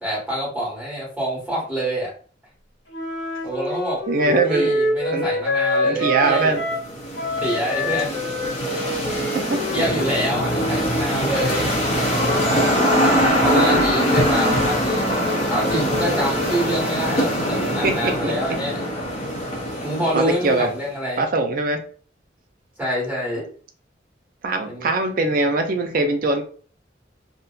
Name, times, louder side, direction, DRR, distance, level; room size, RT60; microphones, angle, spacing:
voice 1, 0.0-2.1 3.4-6.6 7.4-8.2 8.6-8.7 9.7-12.2 13.4-15.1 15.5-18.8 19.8-21.2 22.8-23.5 24.6-24.9, equal, 5° right, -6 dB, 1.4 m, -26 dB
Wind instrument woodwind instrument, 2.9-6.9 7.1-11.1, left 1 dB, 90° left, 1.2 m, -26 dB
voice 2, 4.1-4.7 5.1-5.3 5.8-6.6 9.5-9.6 13.3-13.8 17.8-18.3 20.1-20.7 21.2-21.8 24.4-26.4, right 2 dB, 50° right, 5 dB, 0.4 m, -22 dB
sound 1, 6.3-20.8, equal, 35° left, 0.7 m, -23 dB
2.7 x 2.1 x 2.3 m, 0.42 s
head